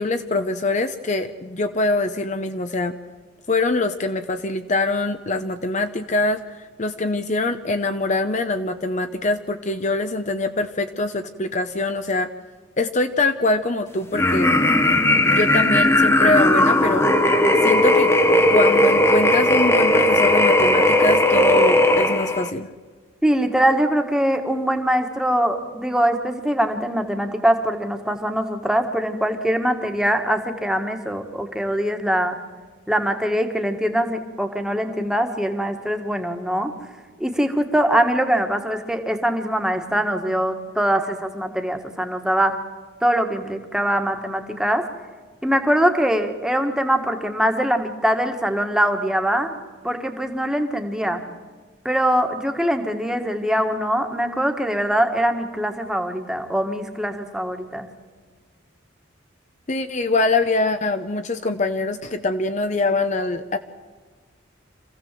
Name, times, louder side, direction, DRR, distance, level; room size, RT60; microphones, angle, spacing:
voice 1, 0.0-3.0 3.5-12.3 12.8-14.5 15.3-17.1 17.6-18.1 18.5-22.7 59.7-63.6, left 2 dB, 35° left, 8 dB, 0.7 m, -23 dB
sound 1, 14.1-22.5, left 1 dB, 15° left, 1.0 m, -17 dB
voice 2, 23.2-32.4 32.9-36.7 37.2-42.6 43.0-44.8 45.4-49.5 49.8-51.2 51.8-57.9, right 1 dB, 5° right, 5 dB, 1.6 m, -22 dB
26.0 x 15.5 x 7.6 m, 1.5 s
head